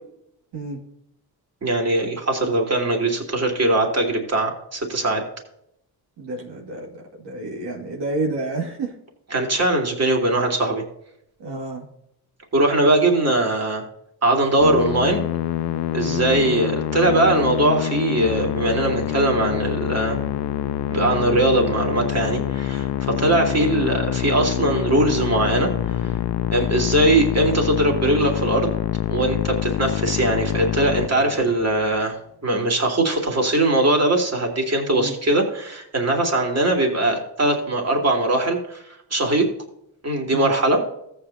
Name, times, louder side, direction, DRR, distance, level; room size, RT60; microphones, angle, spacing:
voice 1, 1.6-5.2 9.3-10.8 12.5-13.8 14.2-15.2 15.9-20.2 20.9-25.9 26.5-28.7 29.1-32.1 32.4-38.8 39.1-39.4 40.0-40.8, right 2 dB, 35° right, 1 dB, 2.9 m, -21 dB
voice 2, 6.2-9.0 11.4-11.9 16.0-16.2 23.2-23.4 34.9-35.1 40.3-40.5, right 2 dB, 75° right, -1 dB, 2.3 m, -30 dB
Musical instrument, 14.6-31.7, left 12 dB, 70° left, 0.6 m, -26 dB
14.5 x 8.5 x 2.8 m, 0.76 s
cardioid pair, 70°, 41 cm